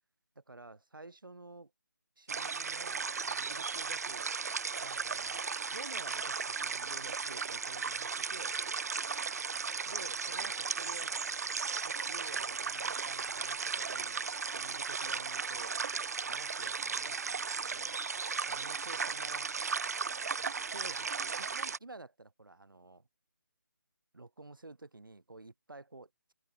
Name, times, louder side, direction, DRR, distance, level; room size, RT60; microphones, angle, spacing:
voice 1, 0.4-1.7 2.2-4.3 4.8-8.6 9.9-11.1 11.8-14.2 14.5-15.8 16.3-18.0 18.5-19.5 20.7-23.1 24.1-26.3, right 2 dB, 85° right, 4.3 m, -51 dB
sound 1, 2.3-21.8, right 5 dB, 50° right, 0.4 m, -36 dB
open air
figure-of-eight pair, 165°, 11 cm